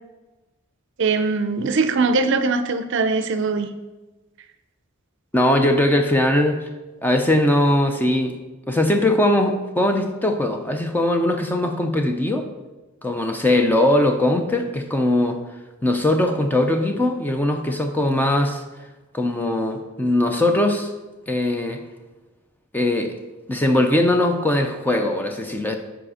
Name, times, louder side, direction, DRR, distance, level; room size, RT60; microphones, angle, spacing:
voice 1, 1.0-3.7, right 4 dB, 55° right, 10 dB, 0.5 m, -21 dB
voice 2, 5.3-6.6 7.0-8.4 8.7-12.5 13.0-15.4 15.8-18.6 19.1-20.9 21.3-21.8 22.7-23.1 23.5-25.7, left 1 dB, 10° left, 4 dB, 0.5 m, -20 dB
7.6 x 4.9 x 4.9 m, 1.1 s
head